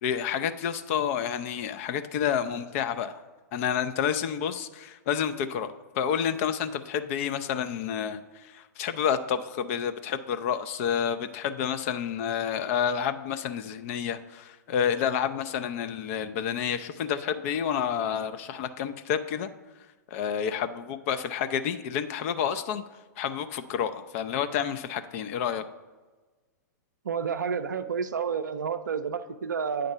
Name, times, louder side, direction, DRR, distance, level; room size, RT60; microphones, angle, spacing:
voice 1, 0.0-3.2 3.5-5.7 5.9-19.5 20.1-22.8 23.2-25.6, left 8 dB, 45° left, 11 dB, 0.5 m, -29 dB
voice 2, 27.0-29.9, right 6 dB, 80° right, 9 dB, 0.4 m, -30 dB
8.7 x 3.9 x 5.5 m, 1.3 s
hypercardioid pair, 105°, 10 cm